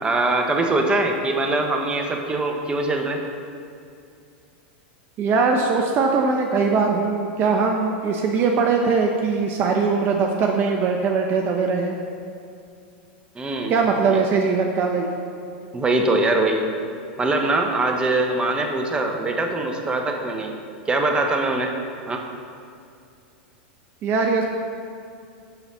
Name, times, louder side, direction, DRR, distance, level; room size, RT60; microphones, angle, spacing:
voice 1, 0.0-3.2 13.3-13.7 14.1-14.2 15.7-16.7 17.2-20.5 20.9-21.7 22.1-22.2, right 2 dB, 15° right, 3 dB, 1.1 m, -22 dB
voice 2, 5.2-12.0 13.7-15.1 24.0-24.4, right 4 dB, 40° right, 2 dB, 0.8 m, -21 dB
12.0 x 4.1 x 6.9 m, 2.5 s
hypercardioid pair, 120°, 6 cm